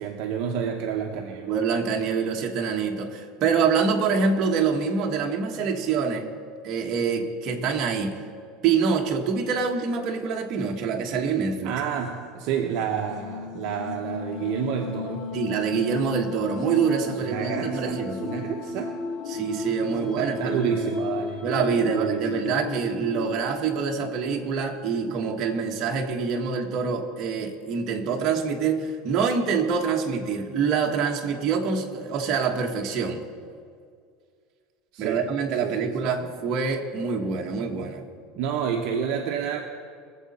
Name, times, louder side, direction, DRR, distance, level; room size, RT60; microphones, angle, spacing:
voice 1, 0.0-1.6 11.6-15.3 17.2-18.9 20.0-21.4 21.9-22.5 34.9-35.2 35.6-36.3 38.3-39.6, right 7 dB, 50° right, 2 dB, 0.9 m, -29 dB
voice 2, 1.5-6.3 6.6-8.2 8.6-11.7 15.3-18.2 19.3-20.9 21.4-33.2 35.0-38.0, right 5 dB, 35° right, 1 dB, 1.3 m, -25 dB
sound 1, 11.6-11.7 12.7-25.1, left 4 dB, 40° left, 2.1 m, -35 dB
22.5 x 7.6 x 4.2 m, 2.2 s
cardioid pair, 170°, 0 cm